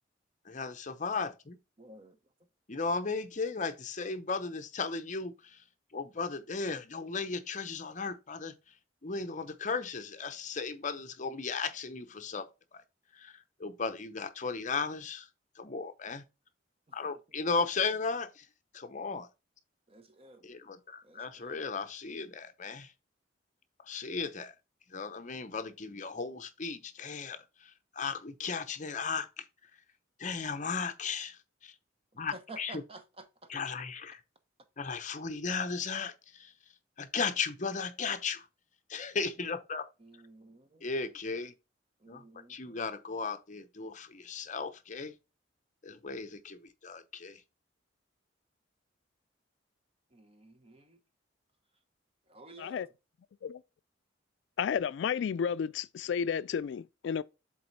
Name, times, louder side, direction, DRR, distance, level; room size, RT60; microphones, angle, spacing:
voice 1, 0.5-1.6 2.7-5.6 5.9-8.5 9.0-12.8 13.1-15.3 15.6-16.2 16.9-18.5 18.7-19.3 20.4-22.9 23.9-24.5 24.9-29.5 30.2-31.7 32.2-32.8 33.5-34.2 34.8-36.5 37.0-38.5 38.9-39.9 40.8-41.5 42.1-42.2 42.5-45.1 45.8-47.4, left 4 dB, 40° left, 0.8 m, -36 dB
voice 2, 1.8-2.2 19.9-20.5 21.0-21.7 32.1-33.5 40.0-40.8 42.0-42.9 50.1-51.0 52.3-52.9, right 2 dB, 30° right, 1.0 m, -52 dB
voice 3, 54.6-57.2, left 7 dB, 65° left, 0.3 m, -32 dB
7.6 x 3.9 x 4.1 m
head